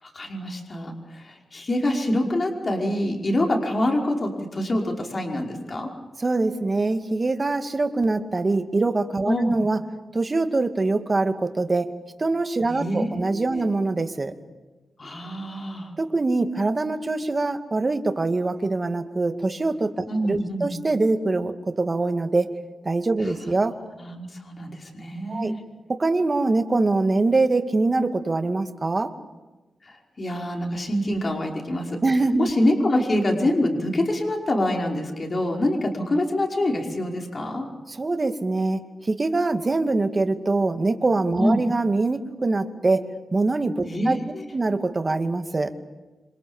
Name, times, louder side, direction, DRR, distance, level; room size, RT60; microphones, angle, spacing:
voice 1, 0.0-5.9 9.2-9.6 12.7-13.7 15.0-15.9 20.1-20.7 23.2-23.3 24.0-25.6 29.8-32.0 32.4-37.7 41.4-41.6 43.9-44.4, left 1 dB, 35° left, 2 dB, 5.3 m, -25 dB
voice 2, 6.2-9.8 10.1-11.9 12.2-14.3 16.0-22.5 22.8-23.8 25.3-25.5 25.9-29.1 32.0-32.5 37.9-43.1 43.3-44.2 44.5-45.7, right 3 dB, 30° right, 7 dB, 2.3 m, -23 dB
28.0 x 26.5 x 7.3 m, 1.1 s
wide cardioid pair, 95°, 0 cm